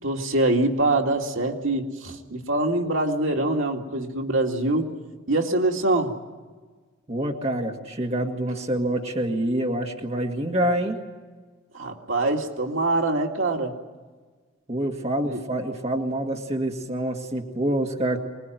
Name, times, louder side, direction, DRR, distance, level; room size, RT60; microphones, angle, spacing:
voice 1, 0.0-4.9 5.3-6.1 11.7-13.7 15.2-15.4, right 2 dB, 75° right, 2 dB, 2.4 m, -24 dB
voice 2, 7.1-11.0 14.7-18.2, right 1 dB, 30° right, 1 dB, 2.0 m, -26 dB
24.5 x 21.0 x 9.3 m, 1.4 s
head